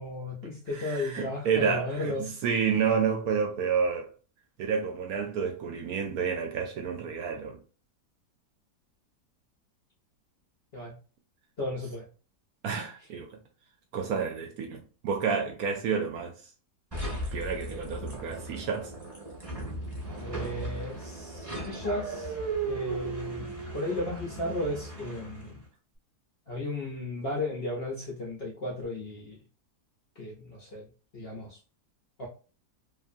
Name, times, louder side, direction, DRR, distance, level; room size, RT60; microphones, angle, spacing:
voice 1, 0.0-2.3 10.7-10.9 11.6-12.0 20.2-22.3 22.7-23.5 23.7-25.6 26.5-29.4 30.2-30.9 31.1-31.6 32.2-32.3, left 1 dB, 50° left, 0.7 m, -34 dB
voice 2, 0.7-4.1 4.6-7.6 12.6-13.3 13.9-16.3 17.3-18.9, right 6 dB, 70° right, 1.0 m, -30 dB
sound 1, 16.9-25.6, right 2 dB, 15° right, 1.2 m, -37 dB
2.9 x 2.5 x 2.5 m
omnidirectional pair, 1.8 m